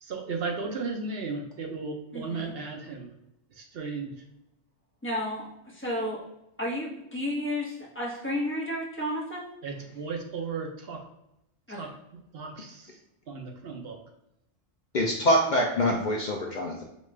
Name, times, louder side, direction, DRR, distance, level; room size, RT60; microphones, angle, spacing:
voice 1, 0.0-3.1 3.5-4.1 9.6-11.0 11.7-11.9 12.3-13.0 13.3-14.0, right 4 dB, 65° right, 2 dB, 0.8 m, -35 dB
voice 2, 2.1-2.5 5.0-6.2 6.6-9.5 11.7-11.9, left 1 dB, 10° left, -5 dB, 0.9 m, -32 dB
voice 3, 14.9-16.8, equal, 55° left, 0 dB, 0.6 m, -25 dB
5.1 x 2.3 x 3.2 m, 0.85 s
omnidirectional pair, 1.2 m